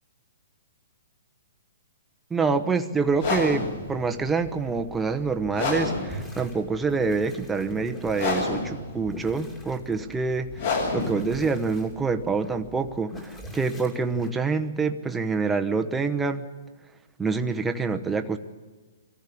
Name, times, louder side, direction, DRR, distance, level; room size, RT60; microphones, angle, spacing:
voice 1, 2.3-10.5 10.9-16.4 17.2-18.4, right 4 dB, 5° right, 5 dB, 1.0 m, -26 dB
sound 1, 3.1-13.0, left 3 dB, 55° left, 7.9 m, -31 dB
sound 2, 6.1-6.6 6.9-8.4 9.0-10.3 10.9-12.5 13.1-14.3, left 1 dB, 15° left, 2.7 m, -42 dB
24.0 x 14.5 x 8.5 m, 1.3 s
hypercardioid pair, 160°, 0 cm